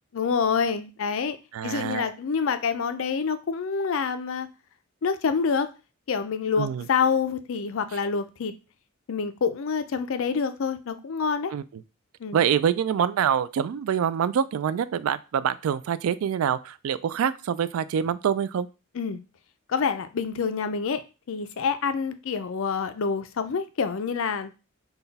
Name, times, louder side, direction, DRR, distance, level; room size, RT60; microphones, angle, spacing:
voice 1, 0.1-1.4 1.6-4.5 5.0-5.7 6.1-8.5 9.1-11.5 12.2-12.4 19.0-19.2 19.7-21.0 21.3-24.5, left 5 dB, 65° left, 0.4 m, -27 dB
voice 2, 1.5-2.1 6.6-6.9 11.5-11.8 12.3-18.7, right 8 dB, 75° right, 0.3 m, -25 dB
3.9 x 2.3 x 4.0 m
head